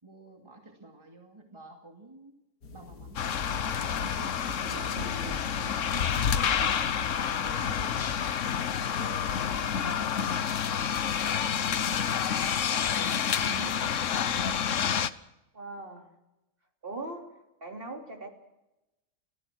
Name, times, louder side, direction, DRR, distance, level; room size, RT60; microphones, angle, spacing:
voice 1, 0.0-2.3 2.7-4.1 4.7-5.4 5.9-8.1 8.7-10.6 10.8-12.0 12.7-14.0, right 2 dB, 20° right, 2 dB, 2.5 m, -50 dB
sound 1, 2.6-14.0, left 3 dB, 85° left, 2.7 m, -50 dB
sound 2, 3.2-15.1, left 8 dB, 60° left, 1.3 m, -28 dB
sound 3, 4.0-6.8, right 7 dB, 75° right, 1.8 m, -45 dB
voice 2, 4.9-5.3 13.3-14.1 15.5-16.1 16.8-17.3 17.6-18.3, right 2 dB, 40° right, 2 dB, 3.5 m, -40 dB
30.0 x 15.0 x 6.3 m, 0.93 s
omnidirectional pair, 1.5 m